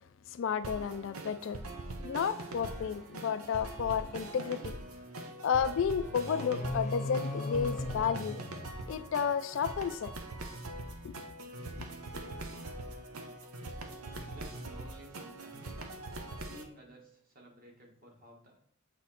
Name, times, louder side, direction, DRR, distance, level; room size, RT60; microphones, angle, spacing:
voice 1, 0.3-1.6 2.0-4.8 5.4-8.4 8.9-10.1 11.0-11.1, left 7 dB, 60° left, 0.3 m, -32 dB
sound 1, 0.6-16.6, right 2 dB, 85° right, 0.7 m, -43 dB
sound 2, 6.0-9.4, left 2 dB, 35° left, 0.7 m, -38 dB
voice 2, 14.0-15.7 16.3-18.6, equal, 40° right, 1.6 m, -55 dB
7.9 x 3.0 x 4.1 m
head